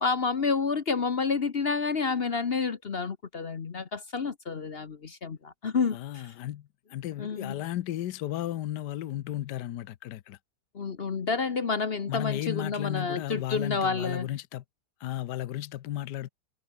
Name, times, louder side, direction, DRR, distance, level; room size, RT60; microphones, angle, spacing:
voice 1, 0.0-6.2 7.2-7.6 10.7-14.3, left 5 dB, 40° left, 1.1 m, -29 dB
voice 2, 5.9-10.4 12.1-14.6 15.0-16.3, left 13 dB, 80° left, 1.4 m, -34 dB
omnidirectional pair, 1.8 m